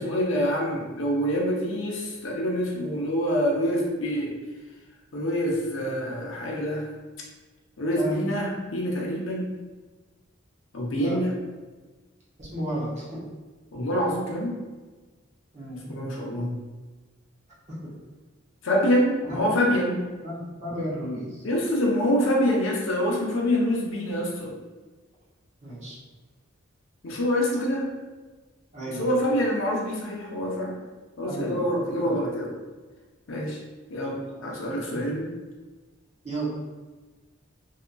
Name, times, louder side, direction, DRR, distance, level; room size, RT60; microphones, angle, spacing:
voice 1, 0.0-4.3 5.1-6.9 7.8-9.5 10.7-11.4 13.7-14.6 15.9-16.6 18.6-20.0 21.4-24.5 27.0-27.9 28.9-30.8 31.2-32.6 33.3-33.6 33.9-35.3, equal, 65° left, -2 dB, 0.5 m, -26 dB
voice 2, 12.4-13.2 15.5-15.9 17.7-17.9 19.2-19.4 20.2-21.4 25.6-26.0 28.7-29.2 31.2-31.7 32.0-32.1 34.9-35.0 36.2-36.5, right 1 dB, 30° right, -8 dB, 0.8 m, -33 dB
2.7 x 2.4 x 2.2 m, 1.3 s
head